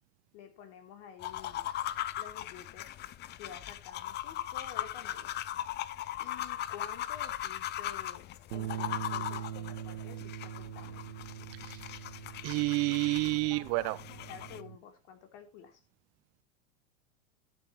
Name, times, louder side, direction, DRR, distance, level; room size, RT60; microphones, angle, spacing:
voice 1, 0.3-1.7 2.1-3.0 3.4-5.4 6.2-11.0 13.5-15.8, left 8 dB, 55° left, 3.7 m, -50 dB
sound 1, 1.2-14.6, left 13 dB, 25° left, 0.5 m, -39 dB
sound 2, 8.5-14.8, right 11 dB, 75° right, 1.1 m, -42 dB
voice 2, 12.4-14.0, right 24 dB, 40° right, 0.5 m, -29 dB
12.5 x 8.8 x 3.2 m
hypercardioid pair, 115°, 39 cm